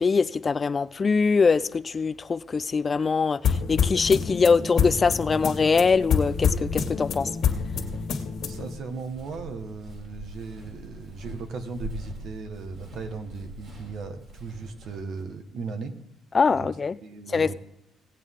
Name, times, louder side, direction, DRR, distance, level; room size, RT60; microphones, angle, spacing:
voice 1, 0.0-7.3 16.3-17.0 17.3-17.5, left 5 dB, 30° left, 0.3 m, -23 dB
sound 1, 3.4-8.8, left 6 dB, 60° left, 2.0 m, -27 dB
Walk footsteps, 5.6-15.2, equal, 45° right, 3.8 m, -42 dB
voice 2, 8.4-15.9 16.5-16.7 17.0-17.5, right 4 dB, 60° right, 1.5 m, -37 dB
18.0 x 8.3 x 3.8 m
cardioid pair, 115°, 0 cm